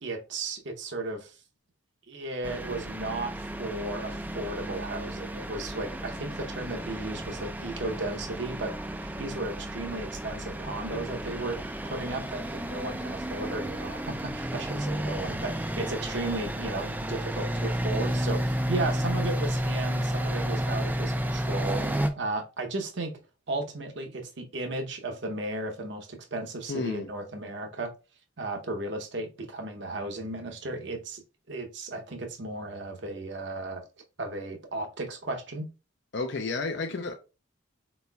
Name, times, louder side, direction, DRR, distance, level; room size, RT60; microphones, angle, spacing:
voice 1, 0.0-1.4 2.1-23.1 23.5-27.9 28.4-31.2 31.5-33.8 34.2-35.7, right 2 dB, 60° right, 0.8 m, -35 dB
sound 1, 2.4-22.1, equal, 10° right, 0.3 m, -32 dB
voice 2, 26.7-27.1 36.1-37.1, left 3 dB, 55° left, 0.5 m, -31 dB
4.1 x 4.1 x 2.3 m
head